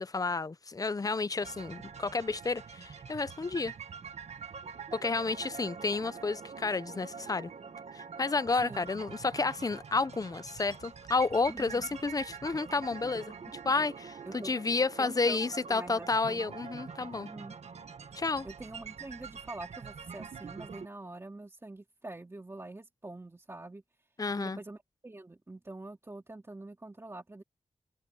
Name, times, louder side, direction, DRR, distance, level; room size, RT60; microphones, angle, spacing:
voice 1, 0.0-3.7 4.9-7.5 7.9-13.3 13.6-17.3 18.1-18.5 24.2-24.6, left 3 dB, 35° left, 0.7 m, -31 dB
sound 1, 1.4-20.9, right 6 dB, 85° right, 1.5 m, -45 dB
voice 2, 11.5-11.8 14.3-14.5 15.0-16.5 17.1-17.5 18.4-23.8 24.4-27.4, right 2 dB, 25° right, 2.3 m, -45 dB
wide cardioid pair, 100°, 11 cm